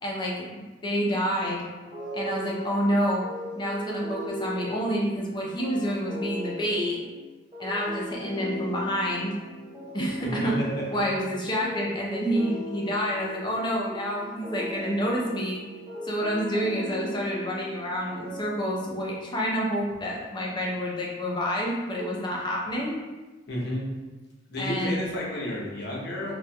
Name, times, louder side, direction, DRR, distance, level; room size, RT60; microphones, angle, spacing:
voice 1, 0.0-1.6 2.1-3.2 3.6-7.0 7.6-9.3 9.9-10.5 10.9-15.6 16.0-23.0 24.6-25.0, equal, 25° left, -3 dB, 0.6 m, -28 dB
sound 1, 1.8-19.0, equal, 20° right, 1.3 m, -38 dB
voice 2, 10.4-11.0 23.5-23.9 24.5-26.3, left 1 dB, 60° left, -3 dB, 0.8 m, -31 dB
4.1 x 2.3 x 2.3 m, 1.2 s
head